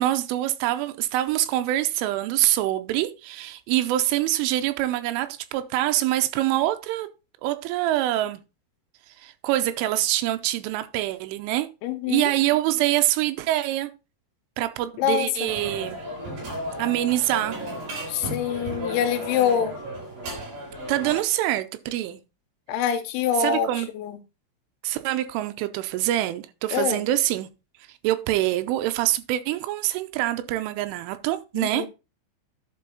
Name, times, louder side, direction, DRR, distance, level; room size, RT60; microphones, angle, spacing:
voice 1, 0.0-7.1 7.4-8.4 9.1-11.7 12.1-13.9 14.6-16.0 16.8-17.6 20.9-22.2 23.4-23.9 24.8-27.5 27.9-31.9, right 14 dB, 85° right, 3.1 m, -25 dB
voice 2, 11.8-12.3 15.0-15.5 18.1-19.8 22.7-24.2 26.7-27.1 31.5-31.9, left 8 dB, 75° left, 3.2 m, -25 dB
sound 1, 15.4-21.2, equal, 55° right, 7.2 m, -34 dB
11.0 x 5.3 x 3.9 m
omnidirectional pair, 5.7 m